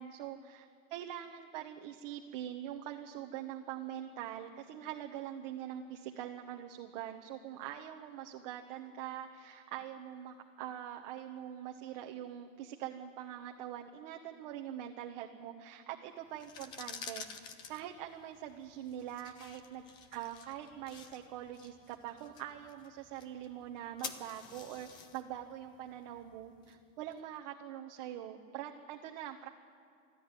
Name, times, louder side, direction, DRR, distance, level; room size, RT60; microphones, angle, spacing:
voice 1, 0.0-17.3 17.7-19.9 20.1-29.5, right 11 dB, 35° right, 3 dB, 1.0 m, -44 dB
sound 1, 16.3-27.2, left 6 dB, 10° left, 0.5 m, -50 dB
25.5 x 13.0 x 9.8 m, 2.3 s
supercardioid pair, 170°, 39 cm